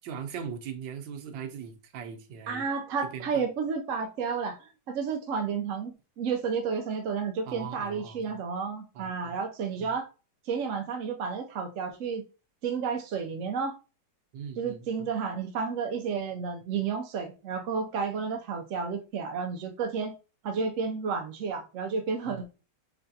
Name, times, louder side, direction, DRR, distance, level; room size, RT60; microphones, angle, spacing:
voice 1, 0.0-2.7 3.1-3.5 7.4-8.4 8.9-9.4 9.8-9.9 14.3-15.1 22.3-22.5, right 7 dB, 90° right, 1.5 m, -40 dB
voice 2, 2.5-10.1 10.5-12.2 12.6-13.8 14.6-20.1 20.4-22.4, right 5 dB, 65° right, 0.7 m, -31 dB
5.6 x 3.3 x 2.7 m
omnidirectional pair, 2.0 m